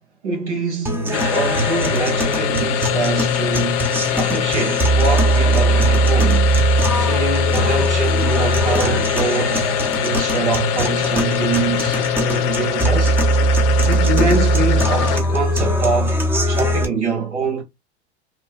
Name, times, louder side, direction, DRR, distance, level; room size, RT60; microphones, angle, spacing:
voice 1, 0.2-6.5 6.9-13.2 13.8-17.6, right 4 dB, 85° right, 1.3 m, -24 dB
sound 1, 0.9-16.9, right 1 dB, 5° right, 0.7 m, -20 dB
sound 2, 1.1-15.4, left 10 dB, 50° left, 0.6 m, -24 dB
2.9 x 2.2 x 2.9 m
hypercardioid pair, 90°, 34 cm